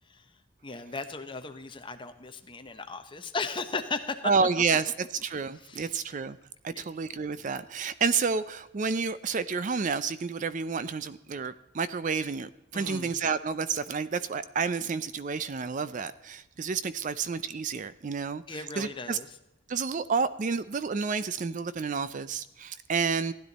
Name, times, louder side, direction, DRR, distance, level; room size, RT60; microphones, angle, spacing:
voice 1, 0.6-4.2 5.7-5.9 6.7-6.8 12.7-13.1 18.5-19.3, left 4 dB, 25° left, 7 dB, 0.9 m, -36 dB
voice 2, 4.2-6.4 6.6-19.2 19.7-23.3, right 5 dB, 35° right, 15 dB, 0.4 m, -30 dB
16.0 x 10.5 x 4.1 m, 0.91 s
head